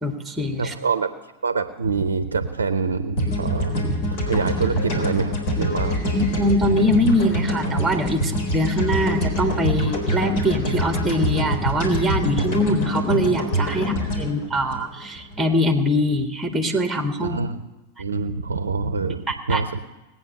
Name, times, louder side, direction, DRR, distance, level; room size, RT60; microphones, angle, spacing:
voice 1, 0.0-0.7 6.1-17.4 19.3-19.6, equal, 5° right, 6 dB, 1.6 m, -23 dB
voice 2, 0.6-1.1 1.4-3.8 4.3-6.0 13.8-13.9 17.2-17.6 18.0-19.8, right 4 dB, 70° right, 12 dB, 0.7 m, -25 dB
sound 1, 3.2-15.4, equal, 50° left, 3.8 m, -25 dB
19.0 x 9.2 x 6.5 m, 1.1 s
figure-of-eight pair, 90°, 0 cm